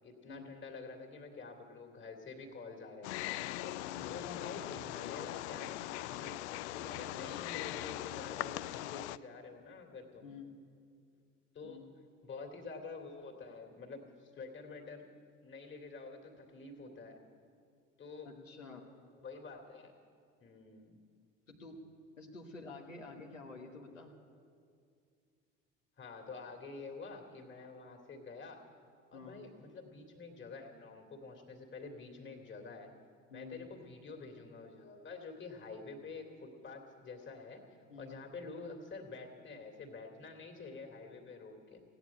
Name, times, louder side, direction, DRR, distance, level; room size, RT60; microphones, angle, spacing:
voice 1, 0.0-6.4 6.7-10.3 11.5-11.8 12.2-15.0 15.4-17.2 18.0-18.3 19.2-19.9 20.4-21.0 26.0-28.6 29.1-32.9 33.3-37.6 38.0-41.8, left 4 dB, 30° left, 3 dB, 2.5 m, -48 dB
Wild animals, 3.0-9.2, left 16 dB, 65° left, 0.5 m, -40 dB
voice 2, 10.2-10.5 11.6-11.8 18.2-18.9 21.5-21.8 22.2-24.1 29.1-29.4 33.3-33.6 37.9-38.1, left 4 dB, 85° left, 0 dB, 1.4 m, -49 dB
16.5 x 9.2 x 8.6 m, 2.3 s
figure-of-eight pair, 65°, 38 cm